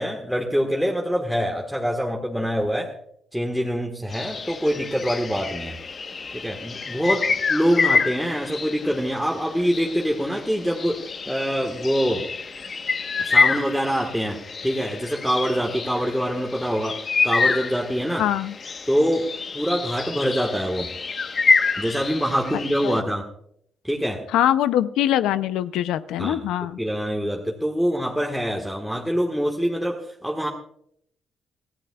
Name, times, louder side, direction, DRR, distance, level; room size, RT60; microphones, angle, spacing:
voice 1, 0.0-2.9 3.3-5.8 6.3-12.2 13.2-18.3 18.9-19.3 19.5-20.9 21.8-23.3 23.8-24.2 26.2-26.4 26.8-30.5, equal, ahead, -1 dB, 1.5 m, -25 dB
sound 1, 4.1-23.0, left 4 dB, 40° left, 1.1 m, -27 dB
voice 2, 18.2-18.6 22.8-23.0 24.3-26.8, left 11 dB, 90° left, 14 dB, 0.5 m, -23 dB
24.5 x 15.0 x 2.3 m, 0.70 s
cardioid pair, 90°, 0 cm